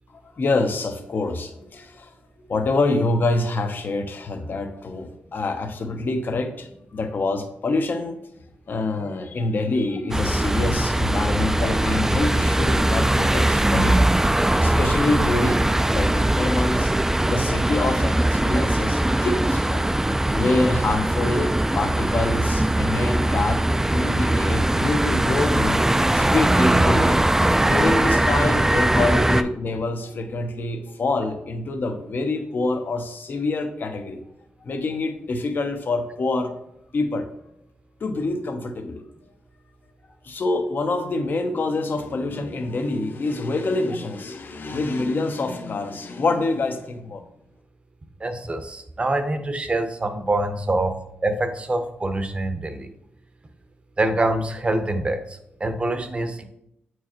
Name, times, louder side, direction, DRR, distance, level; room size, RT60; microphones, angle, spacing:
voice 1, 0.3-2.1 2.4-8.2 8.7-14.1 14.6-16.9 17.2-19.9 20.3-23.6 23.9-25.8 26.1-34.2 34.6-36.5 36.9-37.3 38.0-39.0 40.2-47.2, left 2 dB, 60° left, 6 dB, 0.8 m, -26 dB
sound 1, 10.1-29.4, right 1 dB, 10° right, 0.4 m, -21 dB
voice 2, 48.2-52.9 54.0-56.4, right 2 dB, 30° right, 8 dB, 0.7 m, -25 dB
8.4 x 4.6 x 3.0 m, 0.77 s
cardioid pair, 80°, 4 cm